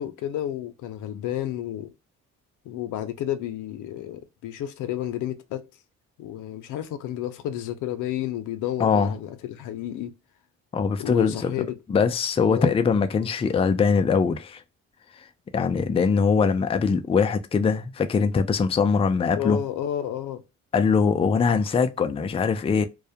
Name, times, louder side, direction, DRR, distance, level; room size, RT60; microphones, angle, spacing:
voice 1, 0.0-1.9 2.6-5.7 6.2-10.1 11.0-11.8 12.5-12.8 19.3-20.4 21.5-21.6, left 11 dB, 85° left, 0.5 m, -31 dB
voice 2, 8.8-9.1 10.7-11.5 11.9-14.6 15.2-15.3 15.5-19.6 20.7-22.9, left 5 dB, 20° left, 0.3 m, -22 dB
2.3 x 2.1 x 2.7 m
cardioid pair, 90°, 30 cm